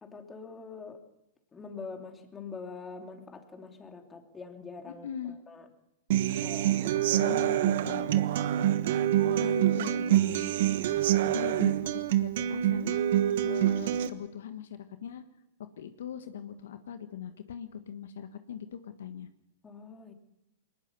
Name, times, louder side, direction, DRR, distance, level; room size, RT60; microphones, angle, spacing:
voice 1, 0.0-1.0 1.5-5.7 6.3-7.4 7.7-8.5 19.6-20.1, left 4 dB, 15° left, 4 dB, 2.9 m, -45 dB
voice 2, 4.9-5.4 7.1-8.1 9.2-10.5 11.2-13.0 13.4-15.2 15.8-19.3, left 9 dB, 70° left, 9 dB, 1.4 m, -40 dB
Human voice / Acoustic guitar, 6.1-14.1, right 12 dB, 60° right, 1.2 m, -26 dB
22.0 x 19.5 x 7.0 m, 0.87 s
hypercardioid pair, 120°, 0 cm